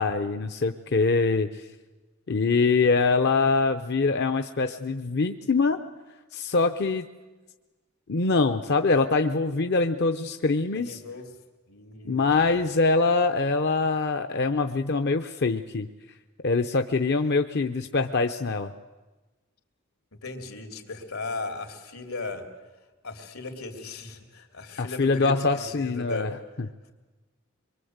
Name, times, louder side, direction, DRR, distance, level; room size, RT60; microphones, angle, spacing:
voice 1, 0.0-1.6 2.3-5.8 6.3-7.0 8.1-11.0 12.1-15.9 16.4-18.7 24.8-26.3, left 3 dB, 50° left, 7 dB, 0.7 m, -24 dB
voice 2, 10.7-11.3 11.7-12.6 20.1-22.4 23.0-26.4, left 3 dB, 85° left, 4 dB, 3.2 m, -37 dB
24.0 x 23.0 x 8.0 m, 1.2 s
head